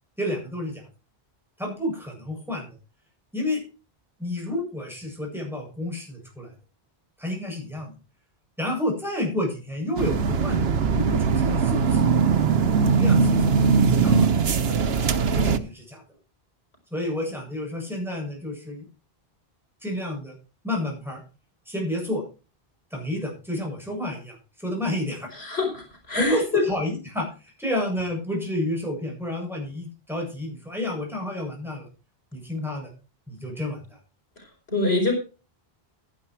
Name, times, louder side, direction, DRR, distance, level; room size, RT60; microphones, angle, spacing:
voice 1, 0.2-0.8 1.6-2.7 3.3-3.6 4.2-6.5 7.2-7.9 8.6-12.1 12.9-14.3 15.3-16.0 16.9-18.8 19.8-20.3 20.6-21.2 21.7-22.2 22.9-25.3 26.2-31.9 32.3-32.9 33.3-34.0, left 1 dB, ahead, -1 dB, 7.6 m, -30 dB
sound 1, 10.0-15.6, right 5 dB, 80° right, 1.2 m, -20 dB
voice 2, 25.3-26.6 34.4-35.1, left 3 dB, 85° left, 3 dB, 4.9 m, -26 dB
11.5 x 11.0 x 4.6 m, 0.34 s
omnidirectional pair, 1.0 m